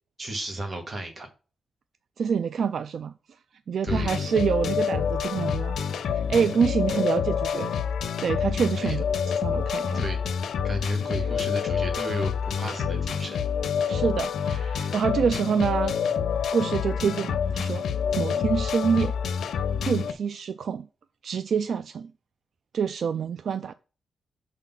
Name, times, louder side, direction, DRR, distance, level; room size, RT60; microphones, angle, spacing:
voice 1, 0.2-1.3 3.8-4.1 6.3-6.5 8.8-9.0 9.9-10.2 10.6-13.4 13.9-14.0, right 1 dB, 30° right, 2.0 m, -34 dB
voice 2, 2.2-3.1 3.7-7.8 8.2-9.0 9.4-10.0 13.9-16.0 16.5-17.8 18.2-19.2 19.4-20.9 21.2-22.1 22.7-23.7, right 6 dB, 65° right, 0.3 m, -27 dB
sound 1, 3.9-20.1, left 7 dB, 85° left, 0.6 m, -27 dB
6.3 x 4.1 x 5.7 m
cardioid pair, 110°, 0 cm